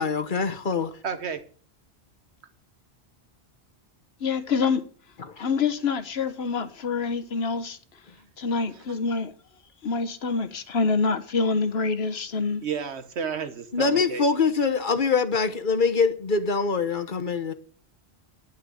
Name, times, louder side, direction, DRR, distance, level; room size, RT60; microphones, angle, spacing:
voice 1, 0.0-0.9 5.4-5.5 13.7-17.5, left 4 dB, 50° left, 1.2 m, -24 dB
voice 2, 1.0-1.4 12.6-14.2, right 6 dB, 85° right, 1.4 m, -31 dB
voice 3, 4.2-4.9 5.4-7.8 8.4-9.3 9.8-12.6, left 4 dB, 70° left, 1.3 m, -26 dB
10.5 x 6.2 x 8.3 m
omnidirectional pair, 1.1 m